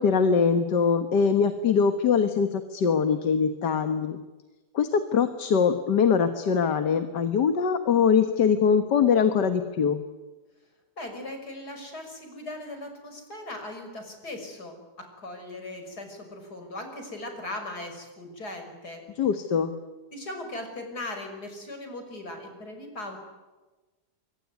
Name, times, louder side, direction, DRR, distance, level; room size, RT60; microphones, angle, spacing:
voice 1, 0.0-4.2 4.7-10.0 19.2-19.7, left 6 dB, 85° left, 8 dB, 2.0 m, -22 dB
voice 2, 11.0-19.1 20.1-23.2, left 1 dB, 70° left, 5 dB, 6.6 m, -39 dB
25.5 x 23.0 x 9.5 m, 1.2 s
omnidirectional pair, 1.8 m